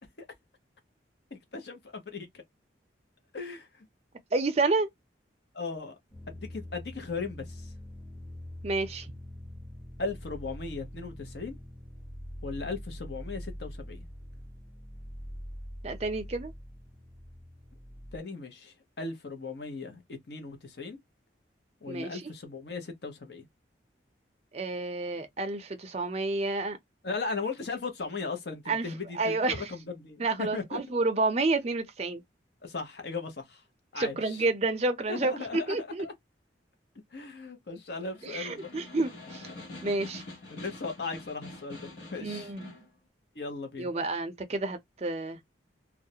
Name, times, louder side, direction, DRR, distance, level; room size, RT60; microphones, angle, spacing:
voice 1, 1.3-2.3 3.3-3.9 5.5-5.9 6.3-7.7 10.0-11.6 12.4-14.1 18.1-20.0 20.3-21.0 21.8-23.5 27.0-30.8 32.6-33.6 33.9-34.4 35.1-36.1 37.1-38.7 40.5-42.5 43.3-43.9, left 4 dB, 60° left, 0.7 m, -37 dB
voice 2, 4.3-4.9 8.6-9.1 15.8-16.5 21.9-22.2 24.5-26.8 28.7-28.9 29.1-29.7 30.2-32.2 34.0-36.1 38.2-39.5 39.8-40.2 42.2-42.7 43.8-45.4, right 3 dB, 35° right, 0.5 m, -30 dB
sound 1, 6.1-18.2, equal, 30° left, 1.0 m, -44 dB
Snare drum, 38.0-42.9, left 2 dB, 80° left, 1.0 m, -45 dB
2.3 x 2.0 x 2.7 m
head